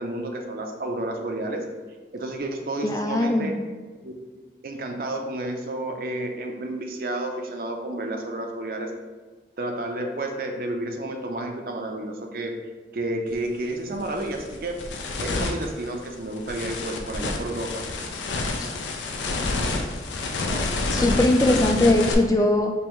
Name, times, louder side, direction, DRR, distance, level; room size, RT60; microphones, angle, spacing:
voice 1, 0.0-1.6 2.1-3.5 4.0-4.1 4.6-8.9 9.6-12.5 12.9-14.8 15.2-17.7, right 1 dB, 50° right, 3 dB, 0.5 m, -31 dB
voice 2, 2.8-3.5 18.6-18.7 20.9-22.7, left 1 dB, 20° left, 2 dB, 0.4 m, -20 dB
sound 1, 13.3-13.5 13.9-22.1, left 3 dB, 85° left, 0.5 m, -29 dB
5.3 x 2.6 x 3.0 m, 1.3 s
head